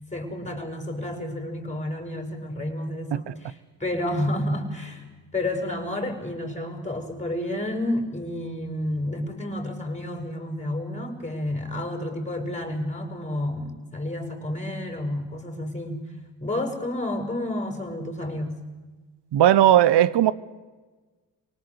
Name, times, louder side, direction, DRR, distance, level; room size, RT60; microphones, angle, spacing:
voice 1, 0.1-5.0 5.3-16.0 16.4-18.5, left 1 dB, 15° left, 6.4 m, -30 dB
voice 2, 19.3-20.3, right 12 dB, 70° right, 1.1 m, -16 dB
25.0 x 18.5 x 8.1 m
supercardioid pair, 60°, 44 cm